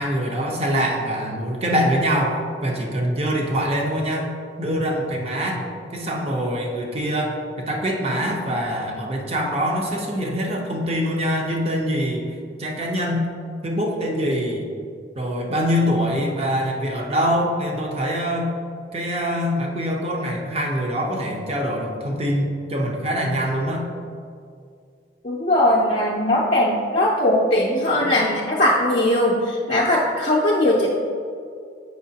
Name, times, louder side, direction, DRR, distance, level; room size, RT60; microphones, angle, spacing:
voice 1, 0.0-4.3 4.6-5.7 5.9-13.3 13.6-14.7 15.1-18.5 18.9-23.9, equal, 35° right, 0 dB, 0.8 m, -24 dB
voice 2, 25.2-30.9, left 1 dB, 35° left, -5 dB, 0.6 m, -19 dB
8.0 x 5.5 x 2.8 m, 2.4 s
head